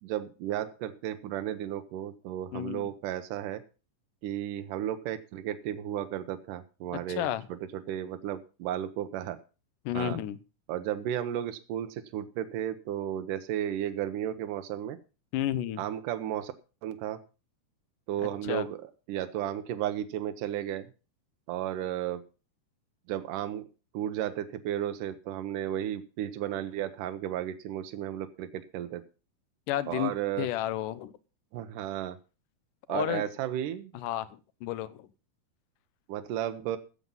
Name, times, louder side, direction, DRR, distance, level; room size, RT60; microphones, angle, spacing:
voice 1, 0.0-3.6 4.2-9.4 9.9-10.2 10.7-15.0 15.8-16.5 16.8-17.2 18.1-18.8 19.1-20.9 21.5-22.2 23.1-23.7 23.9-29.0 29.9-30.5 31.5-32.2 32.9-33.9 36.1-36.8, right 11 dB, 85° right, 8 dB, 2.4 m, -33 dB
voice 2, 2.5-2.9 6.9-7.5 9.9-10.4 15.3-15.8 18.4-18.7 29.7-31.1 32.9-33.3 33.9-35.1, left 13 dB, 85° left, 15 dB, 2.4 m, -32 dB
14.5 x 7.4 x 5.4 m, 0.34 s
omnidirectional pair, 3.6 m